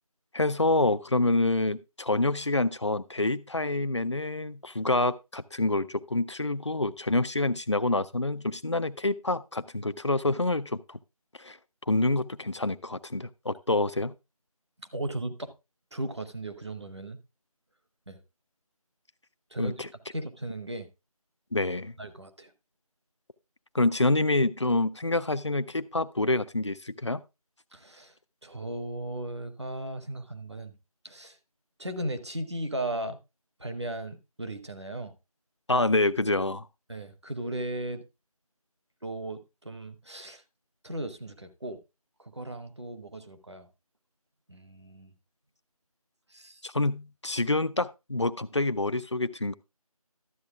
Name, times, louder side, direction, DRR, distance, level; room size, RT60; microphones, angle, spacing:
voice 1, 0.3-11.0 11.4-11.6 11.9-14.1 19.6-19.9 21.5-21.9 23.7-27.2 35.7-36.7 46.6-49.5, left 2 dB, 50° left, 0.6 m, -27 dB
voice 2, 14.9-15.5 15.9-17.2 18.1-18.2 19.5-19.8 20.1-20.9 22.0-22.5 27.7-28.1 28.4-30.7 31.0-31.4 31.8-33.2 33.6-35.1 36.9-38.0 39.0-40.4 40.8-41.8 42.2-43.7 44.5-45.1 46.3-46.6, right 1 dB, 45° right, 1.2 m, -36 dB
12.5 x 7.6 x 3.5 m
figure-of-eight pair, 180°, 19 cm